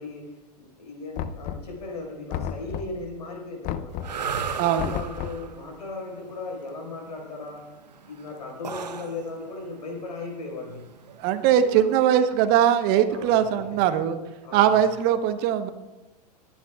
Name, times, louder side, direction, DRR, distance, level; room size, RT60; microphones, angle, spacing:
voice 1, 0.0-4.1 4.6-7.7 8.0-10.9 11.6-11.9 13.1-13.8 14.4-14.8, left 3 dB, 80° left, 0 dB, 5.1 m, -37 dB
Knock, 1.2-1.9 2.3-3.1 3.6-4.3 4.8-5.5, left 9 dB, 40° left, 0.6 m, -33 dB
sound 1, 3.9-12.0, right 6 dB, 85° right, 0.9 m, -36 dB
voice 2, 4.6-4.9 11.2-14.2 14.5-15.7, right 10 dB, 50° right, 9 dB, 1.1 m, -21 dB
26.0 x 10.0 x 2.4 m, 1.1 s
hypercardioid pair, 95°, 21 cm